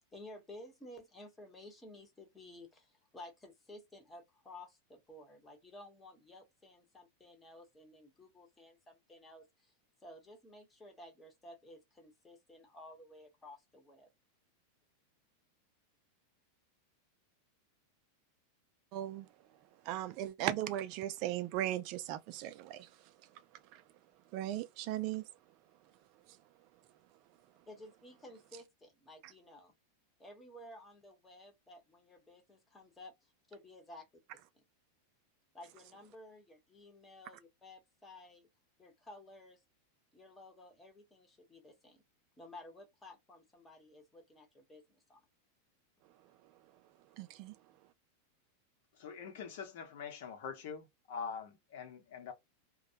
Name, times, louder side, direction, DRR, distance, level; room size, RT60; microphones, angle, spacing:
voice 1, 0.1-9.7 10.0-14.1 27.7-29.7 30.2-34.1 34.5-34.6 35.5-38.5 38.8-39.6 40.1-42.0 42.4-45.3, left 1 dB, 10° left, 0.9 m, -54 dB
voice 2, 18.9-19.3 19.8-23.1 23.7-23.8 24.3-25.2 26.3-26.4 47.2-47.6, right 13 dB, 45° right, 0.3 m, -37 dB
voice 3, 48.9-52.3, left 6 dB, 65° left, 0.9 m, -44 dB
2.3 x 2.0 x 2.7 m
supercardioid pair, 145°, 0 cm